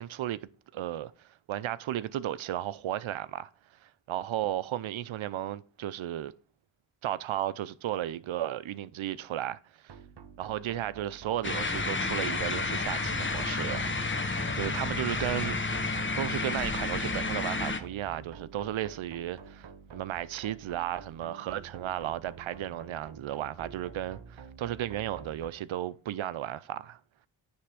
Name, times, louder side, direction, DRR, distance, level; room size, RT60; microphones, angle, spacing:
voice 1, 0.0-3.5 3.8-6.3 7.0-10.0 10.4-13.9 14.5-15.6 16.2-27.0, right 12 dB, 80° right, 0.6 m, -34 dB
sound 1, 9.9-25.5, right 5 dB, 60° right, 1.2 m, -48 dB
sound 2, 11.4-17.8, left 3 dB, 25° left, 1.0 m, -31 dB
9.6 x 3.4 x 5.8 m
cardioid pair, 55°, 47 cm